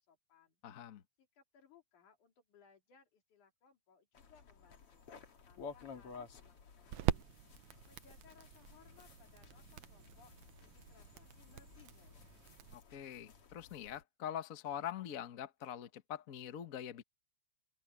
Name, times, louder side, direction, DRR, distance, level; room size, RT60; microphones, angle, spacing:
voice 1, 0.1-0.6 1.2-5.1 5.4-7.3 7.8-10.3 10.6-12.5, left 7 dB, 90° left, 4.6 m, -66 dB
voice 2, 0.6-1.0 12.7-17.0, left 10 dB, 65° left, 0.8 m, -44 dB
sound 1, 4.1-14.0, left 5 dB, 50° left, 3.1 m, -55 dB
sound 2, 4.8-12.7, right 12 dB, 80° right, 2.2 m, -43 dB
open air
omnidirectional pair, 3.4 m